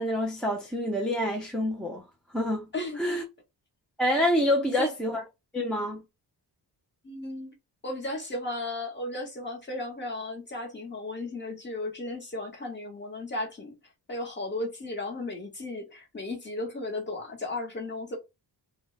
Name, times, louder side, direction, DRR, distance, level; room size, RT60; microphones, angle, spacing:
voice 1, 0.0-2.0 2.3-2.7 3.0-3.2 4.0-5.2 5.5-6.0, left 1 dB, ahead, 0.4 m, -27 dB
voice 2, 2.7-3.2 4.6-4.9 7.0-7.5 7.8-13.8 14.1-18.2, left 2 dB, 25° left, 1.0 m, -35 dB
2.2 x 2.1 x 3.7 m
wide cardioid pair, 145°, 41 cm